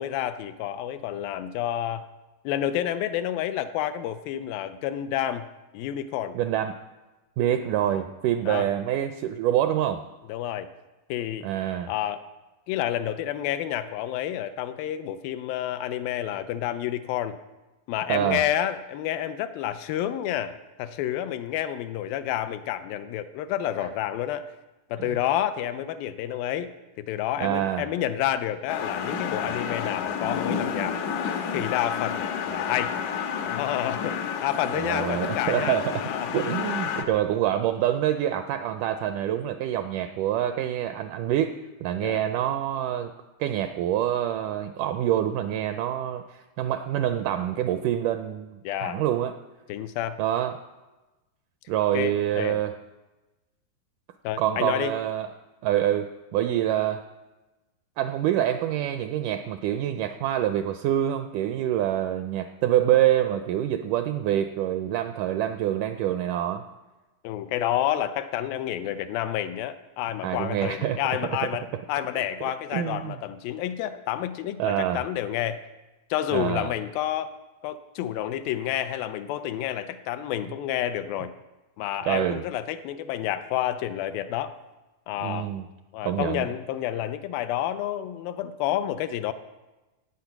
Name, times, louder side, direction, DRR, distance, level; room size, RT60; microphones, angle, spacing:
voice 1, 0.0-2.1 2.5-5.5 5.7-6.4 8.5-8.7 10.3-10.7 11.1-11.5 11.9-12.2 12.7-17.4 17.9-24.5 24.9-26.7 27.0-31.0 31.5-33.0 33.4-34.2 34.4-36.9 42.0-42.2 48.6-49.0 49.7-50.2 51.9-52.6 54.2-54.9 67.2-75.6 76.1-77.3 77.6-81.3 81.8-84.6 85.1-85.5 85.9-89.3, left 11 dB, 85° left, 11 dB, 2.4 m, -29 dB
voice 2, 6.3-6.8 7.4-10.0 11.4-11.9 18.1-18.4 23.8-23.9 27.4-27.9 34.7-43.1 43.4-49.3 50.2-50.6 51.7-52.8 54.4-55.3 55.6-57.0 58.0-66.7 70.2-71.0 72.7-73.2 74.6-75.0 76.3-76.7 82.1-82.5 85.2-85.7 86.0-86.5, right 11 dB, 80° right, 8 dB, 1.9 m, -26 dB
sound 1, 28.7-37.0, left 7 dB, 70° left, 2.0 m, -30 dB
17.0 x 8.5 x 5.9 m, 1.1 s
omnidirectional pair, 4.2 m